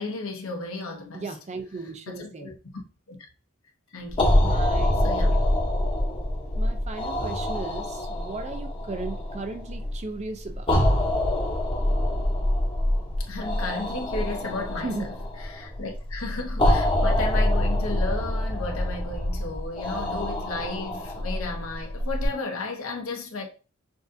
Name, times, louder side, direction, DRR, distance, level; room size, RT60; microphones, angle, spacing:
voice 1, 0.0-1.3 2.1-2.5 3.1-3.2 3.9-4.4 5.0-5.4 13.2-15.1 15.4-23.5, left 3 dB, 75° left, 1.1 m, -34 dB
voice 2, 1.1-2.5 4.4-5.0 5.3-5.4 6.6-10.7 14.8-15.1, right 3 dB, 30° right, 0.5 m, -36 dB
sound 1, 4.1-22.3, left 1 dB, 25° left, 0.9 m, -25 dB
6.0 x 2.5 x 2.6 m
head